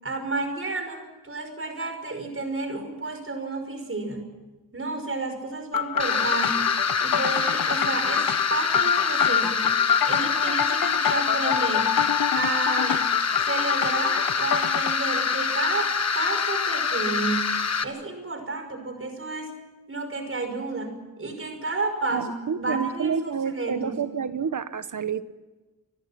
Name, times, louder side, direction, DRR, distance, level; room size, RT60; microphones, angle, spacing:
voice 1, 0.0-4.3 4.7-6.7 7.0-9.7 10.0-11.9 12.4-13.0 13.4-19.6 19.9-22.3 22.6-24.0, right 3 dB, 35° right, 6 dB, 5.6 m, -31 dB
sound 1, 5.7-15.0, left 9 dB, 65° left, 0.8 m, -27 dB
sound 2, 6.0-17.8, left 5 dB, 45° left, 1.4 m, -25 dB
voice 2, 22.1-25.2, right 6 dB, 55° right, 12 dB, 1.2 m, -29 dB
29.0 x 22.0 x 5.9 m, 1.2 s
wide cardioid pair, 175°, 37 cm